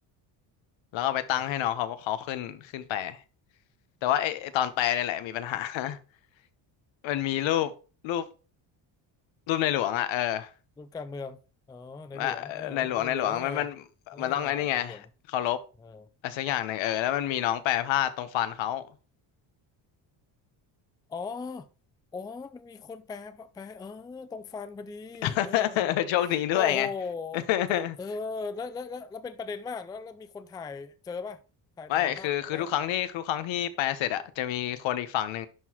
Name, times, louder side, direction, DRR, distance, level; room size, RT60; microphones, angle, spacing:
voice 1, 0.9-3.2 4.0-6.0 7.0-7.7 8.0-8.2 9.5-10.5 12.1-15.0 15.3-15.6 16.2-18.8 25.2-26.9 27.3-27.9 31.9-35.5, left 12 dB, 70° left, 1.0 m, -28 dB
voice 2, 10.8-11.4 11.7-13.7 14.1-15.1 15.8-16.1 21.1-21.7 22.1-25.9 26.5-31.4 31.8-32.7, left 4 dB, 10° left, 0.4 m, -39 dB
11.0 x 3.9 x 3.0 m
cardioid pair, 100°, 48 cm